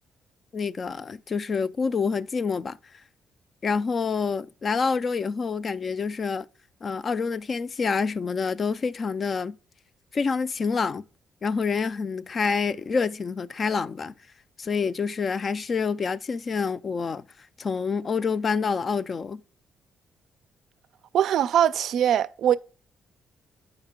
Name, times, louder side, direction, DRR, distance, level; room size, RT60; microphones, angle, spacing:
voice 1, 0.5-2.8 3.6-6.5 6.8-9.6 10.1-11.0 11.4-14.1 14.6-17.2 17.6-19.4, left 5 dB, 40° left, 0.3 m, -27 dB
voice 2, 21.1-22.6, right 10 dB, 75° right, 0.3 m, -22 dB
7.1 x 4.9 x 3.7 m
cardioid pair, 90°, 0 cm